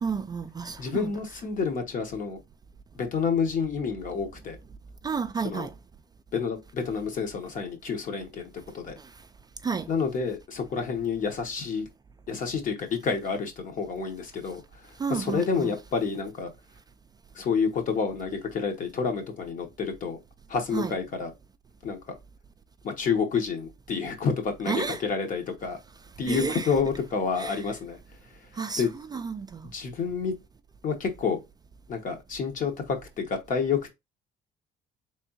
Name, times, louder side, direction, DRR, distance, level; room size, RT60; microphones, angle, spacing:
voice 1, 0.0-1.1 5.0-5.7 9.6-9.9 15.0-15.7 20.7-20.9 24.7-25.0 26.3-26.7 27.4-27.7 28.6-28.9 29.1-29.7, right 5 dB, 25° right, 0.3 m, -31 dB
voice 2, 0.8-2.4 2.9-4.6 5.4-5.7 6.3-9.0 9.9-11.8 12.3-14.6 15.1-16.5 17.4-20.2 20.5-21.3 21.8-22.2 22.8-25.8 26.2-28.0 28.8-28.9 29.7-30.3 30.8-31.4 31.9-33.9, left 5 dB, 50° left, 1.2 m, -29 dB
3.5 x 3.4 x 2.8 m
cardioid pair, 110°, 17 cm